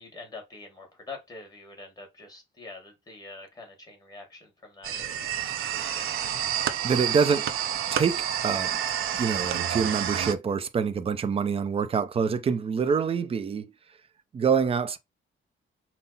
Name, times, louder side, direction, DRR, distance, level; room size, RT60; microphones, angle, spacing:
voice 1, 0.0-5.3 5.6-6.2, left 3 dB, 20° left, 1.6 m, -45 dB
sound 1, 4.8-10.3, right 9 dB, 80° right, 0.6 m, -29 dB
voice 2, 6.8-7.5 7.9-8.7 9.1-13.7 14.3-15.0, right 6 dB, 25° right, 0.4 m, -26 dB
5.6 x 2.0 x 4.0 m
cardioid pair, 165°, 21 cm